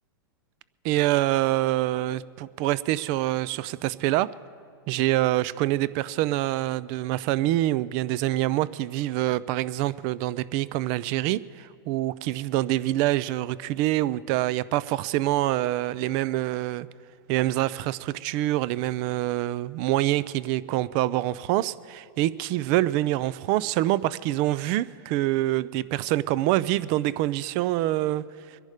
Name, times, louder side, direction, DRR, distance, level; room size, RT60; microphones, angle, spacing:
voice 1, 0.8-4.3 4.9-16.9 17.3-28.6, right 15 dB, 40° right, 19 dB, 0.4 m, -26 dB
23.5 x 11.0 x 5.0 m, 2.2 s
hypercardioid pair, 135°, 12 cm